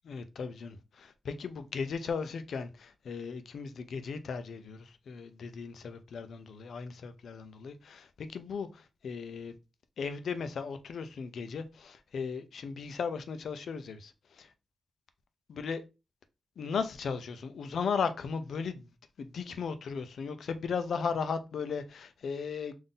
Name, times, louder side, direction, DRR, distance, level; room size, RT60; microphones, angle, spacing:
voice 1, 0.0-9.5 10.0-14.5 15.5-15.8 16.6-18.9 19.2-22.7, left 5 dB, 85° left, 0.5 m, -36 dB
3.7 x 2.6 x 3.8 m
wide cardioid pair, 130°, 0 cm